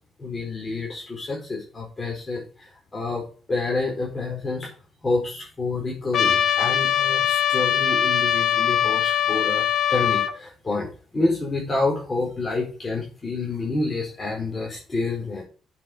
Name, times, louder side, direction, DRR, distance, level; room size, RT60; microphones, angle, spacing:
voice 1, 0.2-4.7 5.0-10.9 11.1-15.4, left 3 dB, 25° left, -2 dB, 4.5 m, -28 dB
Trumpet, 6.1-10.3, left 9 dB, 65° left, 1.7 m, -21 dB
8.0 x 7.5 x 6.3 m, 0.38 s
cardioid pair, 90°, 0 cm